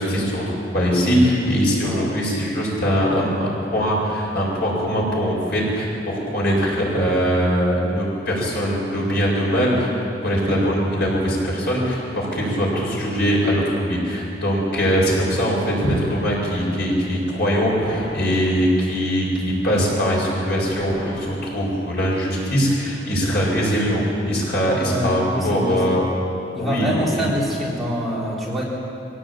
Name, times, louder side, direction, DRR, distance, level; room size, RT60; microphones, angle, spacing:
voice 1, 0.0-9.9 10.2-26.1 26.6-27.3, equal, 60° left, -3 dB, 7.2 m, -21 dB
voice 2, 1.8-2.1 24.8-26.0 26.5-28.6, equal, ahead, -6 dB, 3.7 m, -25 dB
sound 1, 12.6-13.5 15.9-16.1 17.8-18.5 20.7-21.3, left 1 dB, 20° left, 7.0 m, -35 dB
23.0 x 17.5 x 8.8 m, 2.9 s
head